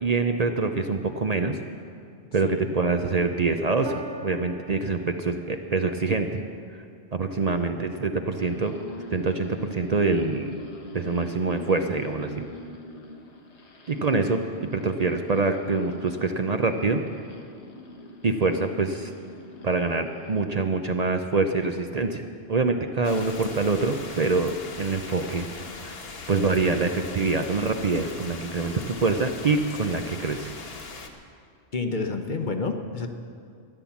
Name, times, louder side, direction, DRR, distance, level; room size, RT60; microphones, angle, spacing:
voice 1, 0.0-1.6 2.3-6.4 6.7-6.8 7.1-8.8 9.1-10.6 10.9-12.4 13.9-17.0 18.2-19.1 19.6-25.5 25.8-25.9 26.3-30.5, right 3 dB, 45° right, 6 dB, 0.6 m, -25 dB
Piano, 3.8-10.4 11.2-11.3, right 5 dB, 75° right, 1.1 m, -47 dB
sound 1, 8.3-20.5, left 2 dB, 85° left, 1.6 m, -44 dB
sound 2, 23.0-31.1, left 3 dB, 65° left, 1.3 m, -40 dB
voice 2, 31.7-33.1, left 4 dB, 50° left, 6 dB, 1.0 m, -29 dB
14.5 x 10.5 x 7.2 m, 2.3 s
omnidirectional pair, 1.1 m